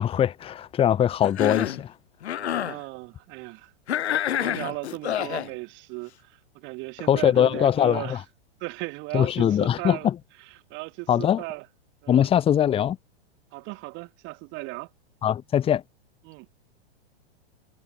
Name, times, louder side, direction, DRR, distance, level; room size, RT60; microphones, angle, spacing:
voice 1, 0.0-1.9 7.1-8.2 9.1-10.1 11.1-11.4 12.1-13.0 15.2-15.8, left 10 dB, 15° left, 1.2 m, -22 dB
Cough, 1.2-1.8 2.2-2.8 3.9-5.5, left 10 dB, 80° left, 2.0 m, -27 dB
voice 2, 2.4-3.7 4.3-8.2 8.6-10.1 10.7-11.7 12.0-12.3 13.5-14.9 16.2-16.5, right 26 dB, 35° right, 2.0 m, -36 dB
hypercardioid pair, 140°, 32 cm